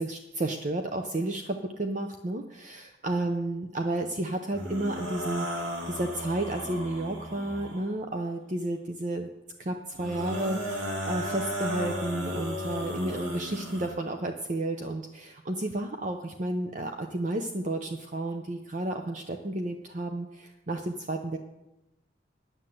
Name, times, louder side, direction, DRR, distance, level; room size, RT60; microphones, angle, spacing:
voice 1, 0.0-9.3 9.6-21.4, right 1 dB, 40° right, 5 dB, 0.6 m, -32 dB
sound 1, 4.5-7.9 9.9-13.9, equal, 70° right, 2.5 m, -35 dB
9.6 x 8.0 x 7.6 m, 0.96 s
head